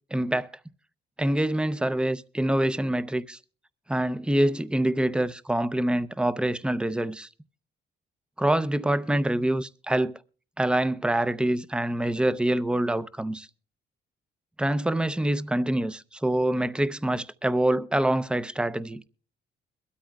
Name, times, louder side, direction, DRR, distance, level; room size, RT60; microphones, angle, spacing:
voice 1, 0.1-0.5 1.2-3.4 3.9-7.3 8.4-10.2 10.6-13.5 14.6-19.0, right 1 dB, 5° right, 0.5 m, -25 dB
22.0 x 13.0 x 2.3 m
cardioid pair, 90°, 20 cm